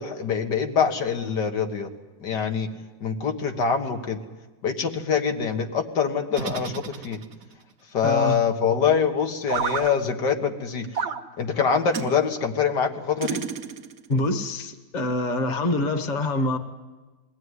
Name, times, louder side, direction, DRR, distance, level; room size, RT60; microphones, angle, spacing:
voice 1, 0.0-1.9 2.2-2.7 3.0-4.2 4.6-7.2 7.9-11.0 11.4-13.4, left 6 dB, 75° left, 4 dB, 2.2 m, -24 dB
sound 1, 6.3-7.5 9.5-9.9 10.9-11.2 11.9-12.1 13.2-14.1, right 6 dB, 55° right, 1.4 m, -30 dB
voice 2, 8.0-8.4 14.1-16.6, left 2 dB, 30° left, 8 dB, 1.3 m, -25 dB
22.0 x 17.0 x 9.7 m, 1.2 s
omnidirectional pair, 1.8 m